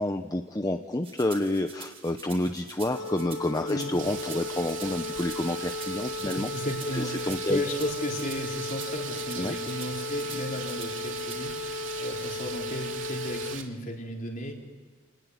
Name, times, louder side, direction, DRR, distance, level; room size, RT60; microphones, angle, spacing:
voice 1, 0.0-6.5 6.9-7.6 9.4-9.5, left 1 dB, 20° left, 6 dB, 0.8 m, -29 dB
sound 1, 1.0-11.4, right 6 dB, 30° right, 3.9 m, -46 dB
sound 2, 2.9-13.5, left 3 dB, 90° left, 1.0 m, -36 dB
sound 3, 4.0-13.6, right 8 dB, 75° right, 2.7 m, -40 dB
voice 2, 6.3-14.5, left 1 dB, 45° left, 1 dB, 4.0 m, -34 dB
29.5 x 19.5 x 9.6 m, 1.4 s
head